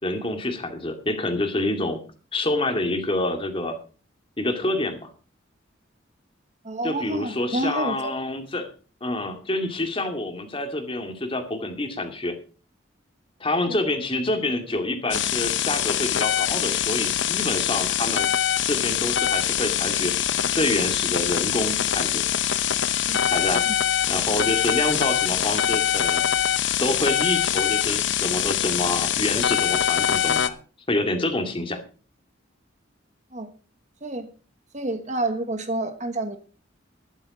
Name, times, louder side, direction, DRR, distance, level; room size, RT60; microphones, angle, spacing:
voice 1, 0.0-2.0 2.3-3.8 4.4-5.1 6.8-8.7 9.0-12.4 13.4-18.3 18.7-20.1 20.5-22.2 23.3-23.6 24.1-26.2 26.8-30.6 30.9-31.8, left 2 dB, 30° left, 5 dB, 2.3 m, -27 dB
voice 2, 6.6-8.1 13.7-13.8 23.1-23.2 23.6-23.8 33.3-33.5 34.0-34.3 34.7-36.4, right 2 dB, 40° right, 9 dB, 1.3 m, -29 dB
sound 1, 15.1-30.5, left 10 dB, 65° left, 0.8 m, -24 dB
12.0 x 12.0 x 4.9 m, 0.37 s
head